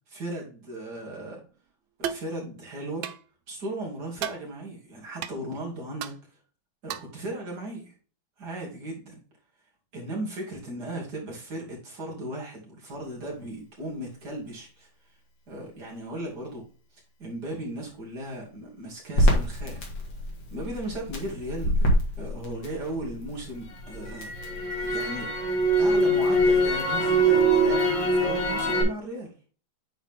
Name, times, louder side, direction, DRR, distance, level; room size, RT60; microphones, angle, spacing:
voice 1, 0.1-1.4 2.0-3.1 3.5-6.1 6.8-7.9 8.4-9.2 9.9-14.9 15.5-16.7 17.2-19.8 20.5-21.9 22.2-24.3 24.8-25.3 25.8-29.3, right 1 dB, 55° right, -2 dB, 3.2 m, -36 dB
sound 1, 2.0-2.3 3.0-3.2 4.2-4.4 5.2-5.3 6.0-6.2 6.9-7.1, right 10 dB, 90° right, 1.5 m, -33 dB
Crackle, 19.2-23.3 23.7-28.8, right 1 dB, 65° left, 2.7 m, -23 dB
8.9 x 4.1 x 3.6 m, 0.38 s
omnidirectional pair, 2.2 m